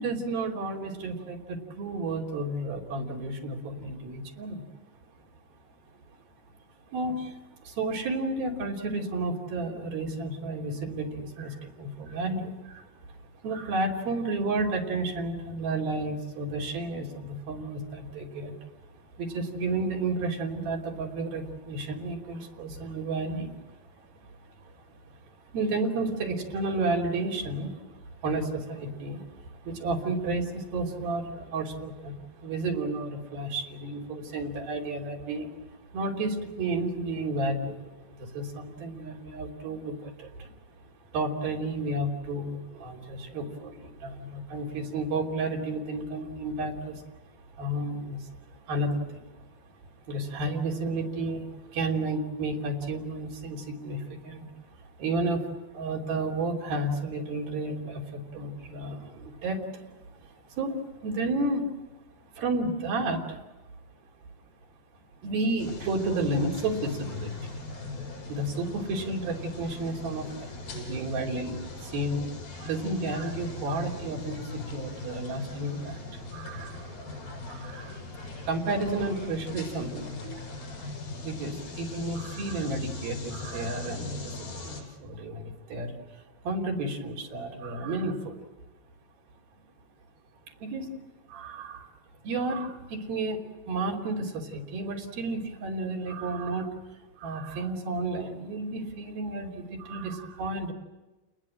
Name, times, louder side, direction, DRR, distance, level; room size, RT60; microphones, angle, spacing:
voice 1, 0.0-4.6 6.9-13.2 13.4-18.5 19.0-23.8 24.2-24.8 25.5-40.6 41.1-49.4 50.1-61.7 62.3-63.4 65.2-67.5 68.3-72.3 72.6-76.9 77.5-80.4 81.2-88.4 90.6-90.9 91.3-91.9 92.2-96.7 97.2-100.7, right 2 dB, 75° right, -1 dB, 4.9 m, -32 dB
sound 1, 65.6-84.8, left 2 dB, 70° left, 7.4 m, -40 dB
29.5 x 20.5 x 7.7 m, 1.1 s
omnidirectional pair, 4.3 m